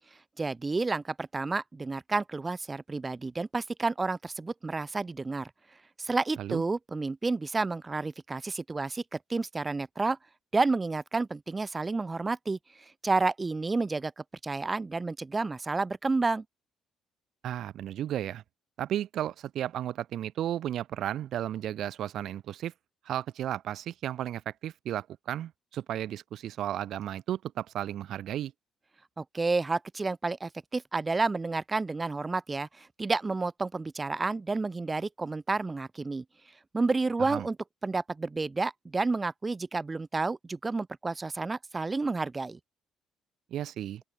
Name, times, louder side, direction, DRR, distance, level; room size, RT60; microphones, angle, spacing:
voice 1, 0.4-5.5 6.0-9.0 9.3-10.2 10.5-12.6 13.0-14.1 14.4-16.4 29.2-36.2 36.7-37.6 37.8-42.6, right 3 dB, 20° right, 3.0 m, -30 dB
voice 2, 17.4-18.4 18.8-22.7 23.1-28.5 37.2-37.5 43.5-44.0, right 11 dB, 65° right, 2.1 m, -34 dB
open air
cardioid pair, 105°, 0 cm